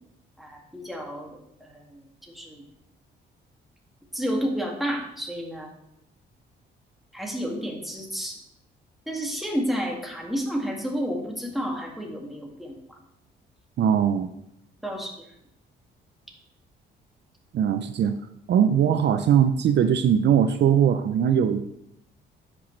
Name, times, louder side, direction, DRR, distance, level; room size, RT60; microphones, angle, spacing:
voice 1, 0.4-2.6 4.1-5.7 7.1-8.4 9.1-12.8 14.8-15.1, equal, ahead, -1 dB, 2.1 m, -31 dB
voice 2, 13.8-14.3 17.5-18.1 18.5-21.6, right 8 dB, 60° right, 9 dB, 0.5 m, -20 dB
10.0 x 6.1 x 3.2 m, 0.81 s
cardioid pair, 90°, 20 cm